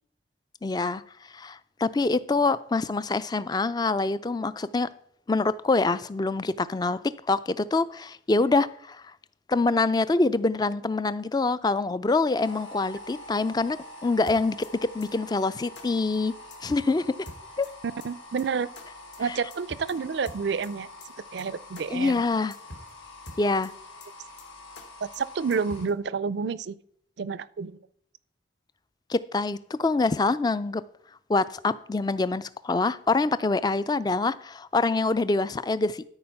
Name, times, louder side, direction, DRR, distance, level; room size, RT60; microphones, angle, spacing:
voice 1, 0.6-1.0 1.3-4.9 5.3-7.0 7.3-9.0 9.5-13.8 14.0-14.7 14.9-16.3 16.6-17.0 17.6-17.7 21.9-22.5 23.4-23.7 29.1-30.8 31.3-36.0, left 3 dB, 20° left, 0.3 m, -25 dB
sound 1, 12.4-25.9, left 1 dB, 85° left, 4.6 m, -46 dB
sound 2, 14.3-14.7 15.0-15.1 15.4-15.5 15.7-15.9 16.1-16.2 16.5-16.9 17.2-17.7 18.0-18.1 18.4-18.5 18.7-18.8 19.1-19.2 19.5-19.9 20.2-20.7 21.0-21.1 21.4-21.5 21.7-21.9 22.1-22.2 22.5-22.9 23.2-23.7 24.0-24.1 24.4-24.5 24.7-24.9 25.1-25.2 25.5-25.9, left 1 dB, 60° left, 1.8 m, -44 dB
voice 2, 18.0-18.7 19.2-20.9 21.3-22.2 25.0-26.7 27.2-27.8, right 5 dB, 60° right, 0.4 m, -29 dB
13.0 x 4.7 x 5.7 m
head